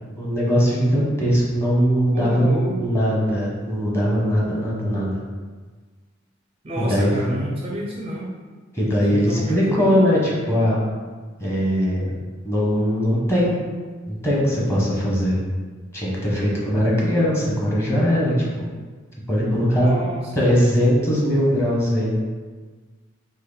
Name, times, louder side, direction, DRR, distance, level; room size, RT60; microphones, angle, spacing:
voice 1, 0.2-5.1 6.8-7.1 8.7-10.8 11.4-12.1 12.4-13.6 14.1-15.3 15.9-18.7 19.3-19.9 20.3-22.1, equal, 15° left, -5 dB, 1.2 m, -20 dB
voice 2, 2.1-3.0 6.6-8.3 9.1-9.8 19.8-20.4, right 1 dB, 30° right, -2 dB, 0.5 m, -29 dB
4.2 x 3.0 x 4.0 m, 1.4 s
head